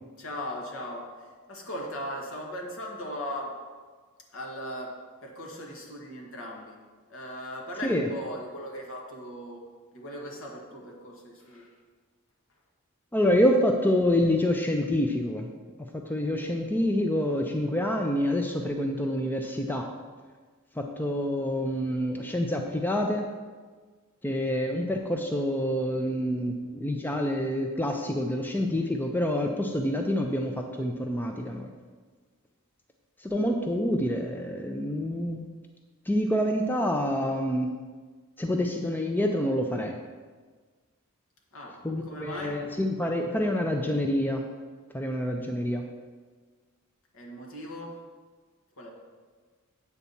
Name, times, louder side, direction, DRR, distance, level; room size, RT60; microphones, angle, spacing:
voice 1, 0.2-3.6 4.3-4.9 5.2-6.7 7.1-9.6 9.9-11.7 41.5-42.6 47.1-48.0 48.8-48.9, left 1 dB, 65° left, 0 dB, 1.6 m, -38 dB
voice 2, 13.1-15.5 15.8-19.9 20.7-23.3 24.2-31.7 33.2-35.5 36.1-37.7 38.4-40.0 41.8-44.4 44.9-45.8, left 1 dB, 10° left, 3 dB, 0.5 m, -27 dB
8.3 x 4.1 x 7.1 m, 1.5 s
head